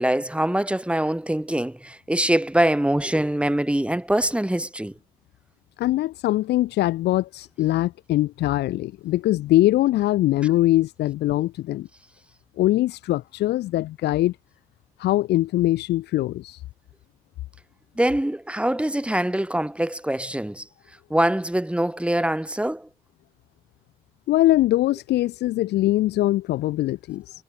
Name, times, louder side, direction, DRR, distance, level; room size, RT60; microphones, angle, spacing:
voice 1, 0.0-4.9 18.0-20.7 21.1-22.9, right 1 dB, 5° right, 6.5 m, -23 dB
voice 2, 5.8-11.9 12.6-14.4 15.0-16.6 24.3-27.4, left 15 dB, 85° left, 1.0 m, -22 dB
supercardioid pair, 70°, 17 cm